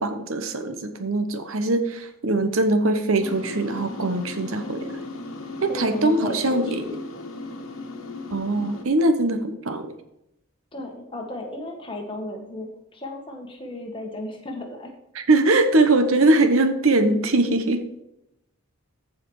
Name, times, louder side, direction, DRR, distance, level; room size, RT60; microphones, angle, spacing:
voice 1, 0.0-5.0 5.6-6.8 8.3-9.9 15.1-17.8, right 2 dB, 70° right, 8 dB, 1.0 m, -21 dB
sound 1, 3.2-8.8, left 2 dB, 70° left, 1.3 m, -36 dB
voice 2, 5.7-6.8 10.7-14.9, left 1 dB, 25° left, 2 dB, 1.6 m, -34 dB
14.5 x 4.9 x 4.8 m, 0.84 s
head